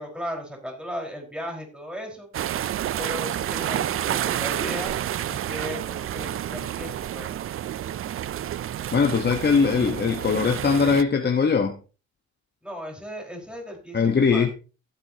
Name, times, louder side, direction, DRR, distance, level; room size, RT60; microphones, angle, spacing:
voice 1, 0.0-2.3 3.0-5.0 5.3-7.3 12.6-14.5, equal, 5° right, 4.9 m, -36 dB
sound 1, 2.3-11.0, right 11 dB, 45° right, 0.4 m, -29 dB
voice 2, 8.9-11.8 13.9-14.5, left 5 dB, 35° left, 1.2 m, -21 dB
15.0 x 8.5 x 2.9 m
cardioid pair, 90°, 30 cm